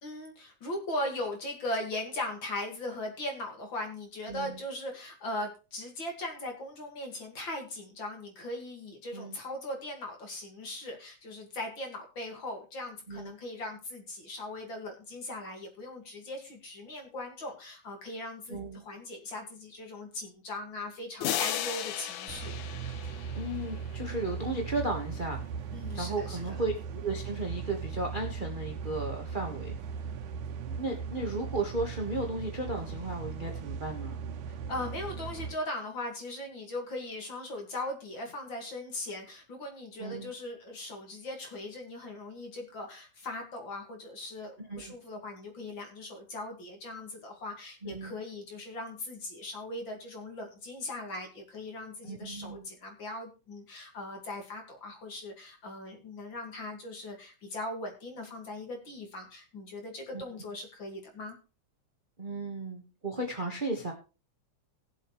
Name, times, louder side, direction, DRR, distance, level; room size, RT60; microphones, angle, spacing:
voice 1, 0.0-22.5 25.7-26.6 34.5-61.4, left 1 dB, 40° left, 3 dB, 2.5 m, -39 dB
voice 2, 18.5-18.8 23.3-25.4 26.0-29.7 30.7-34.2 40.0-40.3 44.6-44.9 47.8-48.1 52.0-52.6 60.1-60.2 62.2-63.9, right 2 dB, 35° right, 2 dB, 0.8 m, -35 dB
sound 1, 21.2-23.9, left 11 dB, 80° left, 2.2 m, -35 dB
sound 2, 22.3-35.5, right 6 dB, 75° right, 2.5 m, -38 dB
19.0 x 7.4 x 3.2 m, 0.32 s
omnidirectional pair, 3.6 m